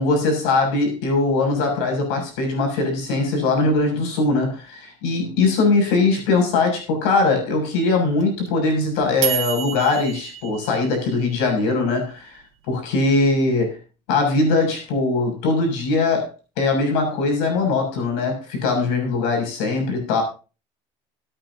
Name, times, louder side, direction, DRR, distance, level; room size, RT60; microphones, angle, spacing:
voice 1, 0.0-12.4 12.7-13.8 14.1-16.3 16.6-20.2, left 3 dB, 80° left, 2 dB, 6.7 m, -21 dB
sound 1, 8.2-11.4, right 13 dB, 45° right, 2.1 m, -29 dB
22.0 x 9.2 x 2.8 m, 0.34 s
cardioid pair, 165°, 14 cm